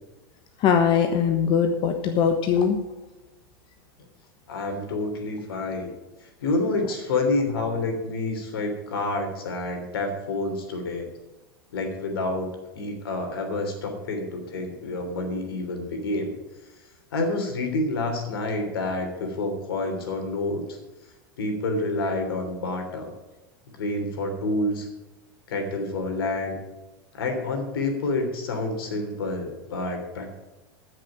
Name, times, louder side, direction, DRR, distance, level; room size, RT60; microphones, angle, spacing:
voice 1, 0.6-2.8, left 7 dB, 45° left, 5 dB, 1.3 m, -21 dB
voice 2, 4.5-5.9 6.4-11.1 11.7-12.5 12.7-16.3 17.1-20.8 21.4-23.1 23.8-24.9 25.5-26.6 27.1-30.3, left 2 dB, 80° left, 5 dB, 3.2 m, -28 dB
14.0 x 6.6 x 7.4 m, 1.1 s
hypercardioid pair, 115°, 12 cm